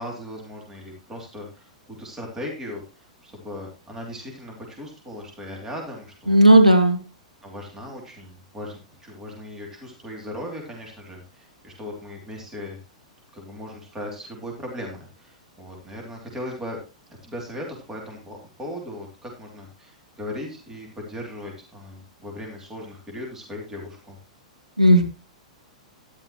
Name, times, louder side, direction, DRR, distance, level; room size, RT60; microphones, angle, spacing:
voice 1, 0.0-6.5 7.4-12.8 13.3-16.8 17.2-24.2, left 1 dB, 10° right, 0 dB, 3.0 m, -38 dB
voice 2, 6.3-7.0 24.8-25.0, right 1 dB, 90° right, 4 dB, 2.0 m, -13 dB
12.5 x 10.5 x 3.1 m, 0.30 s
figure-of-eight pair, 100°, 4 cm